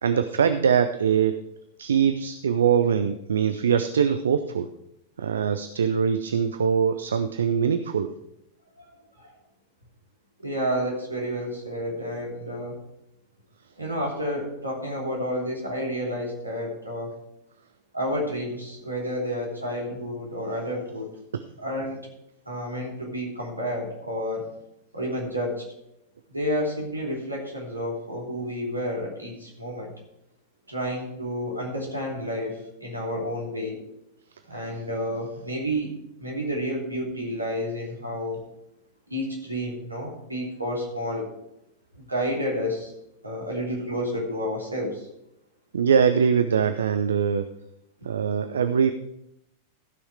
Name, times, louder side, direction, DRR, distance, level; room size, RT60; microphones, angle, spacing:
voice 1, 0.0-1.4 1.8-4.7 5.2-8.1 21.3-21.4 45.7-47.5 48.0-48.9, right 7 dB, 70° right, 10 dB, 0.5 m, -22 dB
voice 2, 8.8-9.3 10.4-12.8 13.8-17.1 17.9-21.1 21.6-22.0 22.4-24.5 24.9-25.6 26.3-29.9 30.7-33.8 34.5-35.9 36.2-38.4 39.1-41.3 41.9-42.9 43.2-45.1, equal, 85° right, -2 dB, 3.1 m, -30 dB
15.0 x 6.3 x 4.8 m, 0.82 s
figure-of-eight pair, 90°, 0 cm